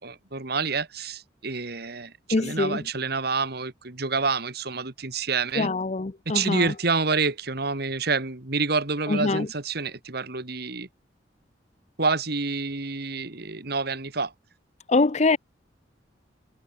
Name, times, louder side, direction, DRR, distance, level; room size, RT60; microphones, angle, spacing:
voice 1, 0.0-2.1 2.4-5.7 6.3-10.9 12.0-14.3, right 4 dB, 55° right, 2.1 m, -28 dB
voice 2, 2.3-2.8 5.5-6.7 9.1-9.5 14.9-15.4, left 3 dB, 35° left, 0.6 m, -24 dB
head